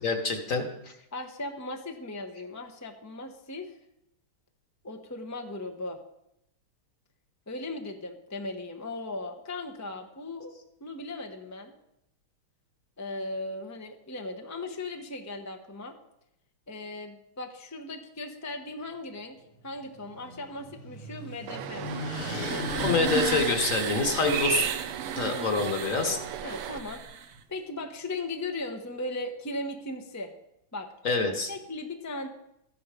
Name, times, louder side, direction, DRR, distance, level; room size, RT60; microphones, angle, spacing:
voice 1, 0.0-0.9 22.8-24.7 25.2-26.2 31.0-31.5, left 3 dB, 45° left, 5 dB, 1.6 m, -26 dB
voice 2, 1.1-3.7 4.8-6.0 7.5-10.5 10.8-11.7 13.0-15.9 16.7-22.0 22.5-22.9 26.0-27.0 27.5-30.3 30.7-30.9 31.5-32.3, left 2 dB, 25° left, 4 dB, 0.4 m, -37 dB
sound 1, 19.5-24.3, left 1 dB, 75° left, 4.0 m, -39 dB
sound 2, 21.5-26.8, right 12 dB, 80° right, 1.5 m, -36 dB
sound 3, 21.6-27.4, right 7 dB, 60° right, 0.8 m, -35 dB
14.0 x 10.5 x 5.1 m, 0.82 s
omnidirectional pair, 2.3 m